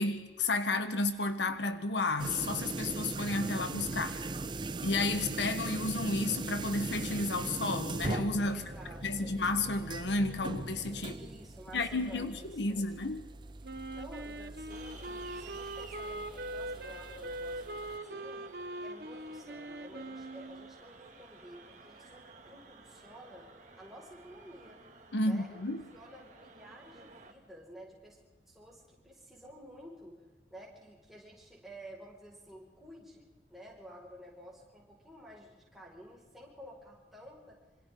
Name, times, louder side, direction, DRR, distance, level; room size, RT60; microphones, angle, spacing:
voice 1, 0.0-4.3 4.8-8.6 9.0-11.1 11.7-13.2 25.1-25.8, left 2 dB, 85° left, 9 dB, 1.3 m, -32 dB
sound 1, 2.2-18.0, right 2 dB, 25° right, 0.5 m, -40 dB
voice 2, 8.5-9.3 11.0-12.9 13.7-18.5 18.8-23.5 23.8-24.8 25.2-28.2 28.5-30.2 30.5-37.6, equal, ahead, -4 dB, 5.5 m, -52 dB
Wind instrument woodwind instrument, 13.6-20.8, right 1 dB, 60° right, 1.1 m, -42 dB
sound 2, 14.7-27.3, right 3 dB, 45° right, 2.3 m, -54 dB
26.5 x 26.5 x 3.9 m, 1.3 s
head